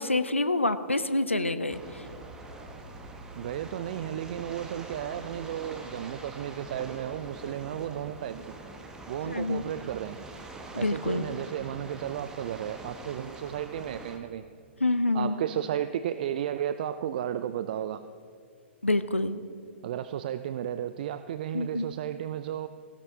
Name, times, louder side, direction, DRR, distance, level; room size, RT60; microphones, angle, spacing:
voice 1, 0.0-2.0 9.3-9.6 10.8-11.2 14.8-15.3 18.8-19.4 21.5-21.9, left 2 dB, 85° left, 11 dB, 0.6 m, -27 dB
sound 1, 1.7-14.2, right 2 dB, 10° right, 1.1 m, -44 dB
voice 2, 3.4-8.5 9.1-10.2 10.7-14.4 15.1-18.0 19.8-22.7, right 10 dB, 45° right, 12 dB, 0.4 m, -33 dB
18.0 x 16.5 x 2.8 m, 2.4 s
figure-of-eight pair, 115°, 7 cm